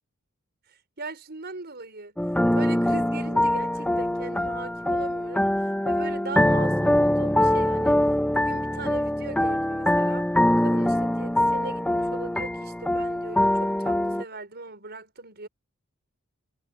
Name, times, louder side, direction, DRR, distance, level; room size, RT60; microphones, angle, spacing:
voice 1, 0.7-2.2 2.5-8.1 8.3-10.3 10.6-15.5, right 3 dB, 50° right, 5.7 m, -40 dB
sound 1, 2.2-14.2, left 1 dB, 5° left, 1.3 m, -23 dB
head